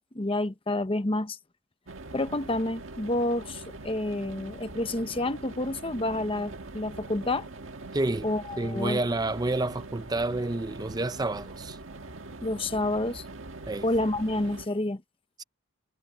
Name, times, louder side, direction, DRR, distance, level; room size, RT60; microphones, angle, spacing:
voice 1, 0.1-1.4 2.1-7.5 8.2-9.0 12.4-13.2 13.8-15.0, left 1 dB, 25° left, 0.9 m, -29 dB
sound 1, 1.9-14.7, right 2 dB, 65° right, 1.8 m, -43 dB
voice 2, 7.9-8.3 8.6-11.8 13.7-13.9, right 2 dB, 20° right, 0.6 m, -29 dB
head